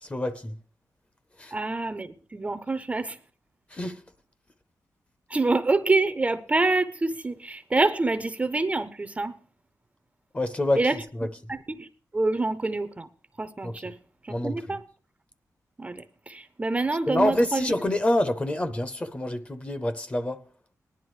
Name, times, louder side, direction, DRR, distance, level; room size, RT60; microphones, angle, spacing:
voice 1, 0.0-0.5 1.4-1.5 3.7-4.0 10.3-10.8 11.1-11.3 13.6-13.7 14.3-14.8 17.1-20.4, left 1 dB, 20° left, 0.7 m, -27 dB
voice 2, 1.5-3.2 5.3-9.3 10.8-11.0 11.5-11.9 12.1-13.1 13.4-14.0 14.2-14.8 15.8-17.7, right 3 dB, 20° right, 0.5 m, -26 dB
19.0 x 11.0 x 3.1 m
wide cardioid pair, 150°, 6 cm